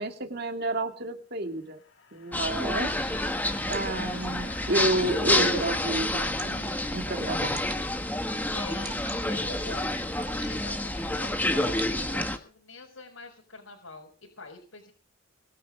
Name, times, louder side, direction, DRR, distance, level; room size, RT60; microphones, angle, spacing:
voice 1, 0.0-1.8 2.1-3.2 3.7-7.6, right 2 dB, 50° right, 5 dB, 2.6 m, -30 dB
sound 1, 1.5-7.8, left 5 dB, 60° left, 2.2 m, -48 dB
sound 2, 2.3-12.4, left 1 dB, 10° left, 1.5 m, -29 dB
Water / Drip, 3.1-12.4, right 4 dB, 20° right, 2.7 m, -49 dB
voice 2, 8.2-10.0 10.4-14.1 14.4-14.9, left 3 dB, 85° left, -1 dB, 4.6 m, -45 dB
22.5 x 10.5 x 5.0 m, 0.40 s
head